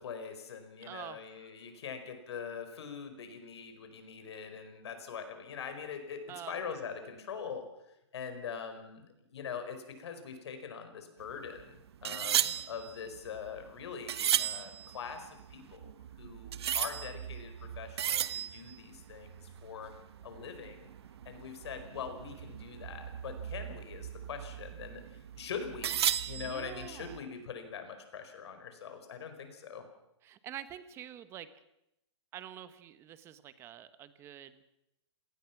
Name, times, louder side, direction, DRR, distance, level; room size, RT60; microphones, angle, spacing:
voice 1, 0.0-7.6 8.1-19.9 20.2-20.9 21.2-26.0 26.3-29.8, left 6 dB, 60° left, 8 dB, 4.9 m, -43 dB
voice 2, 0.8-1.5 6.3-6.5 12.0-12.4 26.4-27.2 30.2-31.5 32.3-34.6, right 11 dB, 15° right, 13 dB, 1.1 m, -47 dB
sound 1, 11.2-27.2, right 10 dB, 60° right, 1.1 m, -36 dB
26.5 x 19.0 x 6.0 m, 0.86 s
hypercardioid pair, 160°, 16 cm